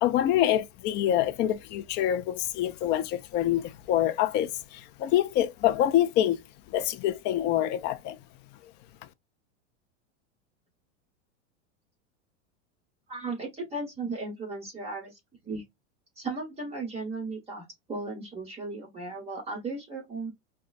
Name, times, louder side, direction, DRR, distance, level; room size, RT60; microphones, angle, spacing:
voice 1, 0.0-6.4 6.7-8.2, left 12 dB, 30° left, 0.4 m, -26 dB
voice 2, 13.1-15.2 15.4-15.6 16.2-20.3, right 3 dB, 15° right, 1.4 m, -36 dB
5.0 x 2.3 x 2.4 m
supercardioid pair, 135°, 36 cm